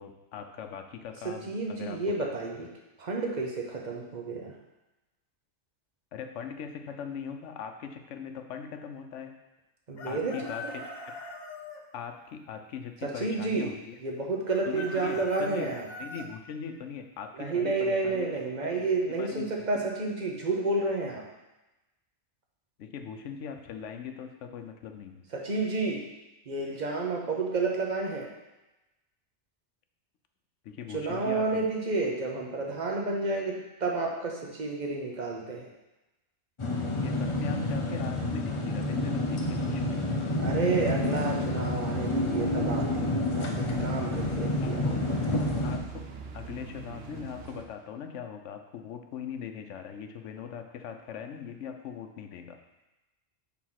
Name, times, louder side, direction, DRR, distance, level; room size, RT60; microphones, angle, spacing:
voice 1, 0.0-2.0 6.1-9.3 10.0-10.8 11.9-13.9 14.7-15.7 16.0-18.3 18.6-18.8 19.2-19.9 22.8-25.2 30.6-31.6 37.0-40.1 44.6-45.0 45.6-46.0 46.3-52.6, left 7 dB, 90° left, 6 dB, 1.0 m, -40 dB
voice 2, 1.2-2.7 3.0-4.6 9.9-10.3 10.6-10.7 13.0-13.7 14.0-15.9 17.4-21.2 25.3-26.0 26.5-28.3 30.9-35.7 40.4-44.9, right 3 dB, 40° right, 0 dB, 1.0 m, -30 dB
Chicken rooster, 10.0-11.8 14.5-16.3, left 2 dB, 60° left, 0.9 m, -42 dB
sound 1, 36.6-45.8, left 1 dB, 35° left, 0.5 m, -29 dB
sound 2, 41.1-47.6, right 6 dB, 65° right, 0.8 m, -43 dB
4.7 x 3.9 x 5.7 m, 1.0 s
omnidirectional pair, 1.2 m